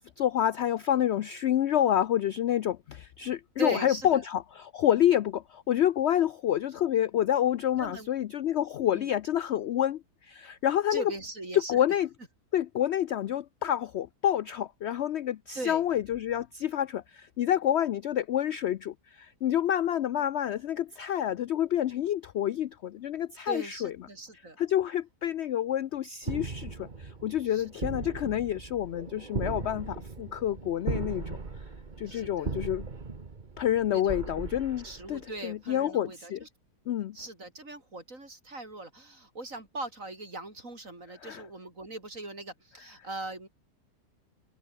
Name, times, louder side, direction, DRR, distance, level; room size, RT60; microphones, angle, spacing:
voice 1, 0.0-11.1 11.5-12.1 12.5-23.9 24.6-31.4 32.0-32.8 33.6-36.4 36.9-37.2 41.2-41.4, left 11 dB, 80° left, 0.6 m, -28 dB
voice 2, 3.6-4.2 7.8-8.1 8.9-9.1 10.9-11.8 15.6-15.8 23.5-24.6 27.5-27.7 32.1-32.6 33.9-34.3 34.8-36.5 37.1-43.5, right 2 dB, 50° right, 5.9 m, -40 dB
sound 1, 26.2-35.5, right 4 dB, 30° right, 1.6 m, -38 dB
open air
omnidirectional pair, 1.7 m